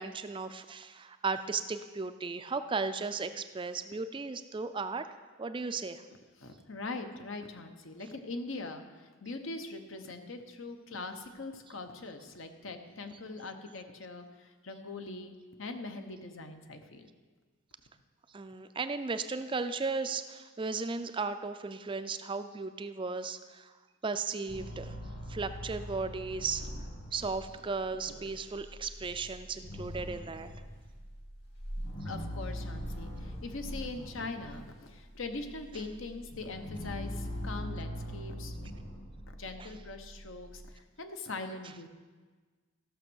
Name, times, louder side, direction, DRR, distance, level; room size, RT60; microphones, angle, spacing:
voice 1, 0.0-5.1 5.4-6.0 18.3-23.7 24.0-25.0 25.3-26.7 27.1-30.5 39.6-39.7, right 4 dB, 25° right, 10 dB, 0.4 m, -35 dB
voice 2, 6.4-15.3 15.6-17.1 32.0-38.5 39.3-41.9, left 3 dB, 70° left, 6 dB, 1.0 m, -42 dB
sound 1, 24.5-34.7 35.0-40.7, equal, 55° left, 2.2 m, -42 dB
14.5 x 6.2 x 6.3 m, 1.4 s
head